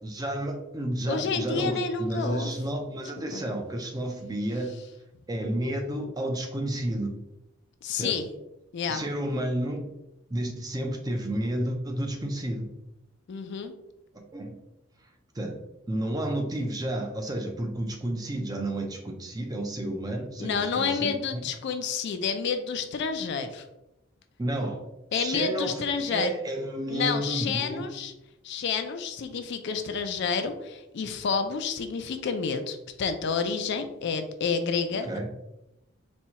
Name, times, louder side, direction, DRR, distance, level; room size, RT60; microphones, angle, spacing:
voice 1, 0.0-4.7 5.3-7.1 7.9-8.2 8.9-9.9 10.3-12.7 14.1-14.6 15.3-15.6 15.9-21.4 24.4-24.8 25.1-27.9 35.0-35.3, right 1 dB, 20° right, 3 dB, 0.4 m, -31 dB
voice 2, 1.1-2.5 3.3-3.4 7.8-8.3 8.7-9.0 13.3-13.7 20.4-23.6 25.1-26.3 26.9-28.1 28.4-35.3, left 5 dB, 55° left, 8 dB, 0.4 m, -29 dB
4.2 x 2.3 x 2.8 m, 0.90 s
head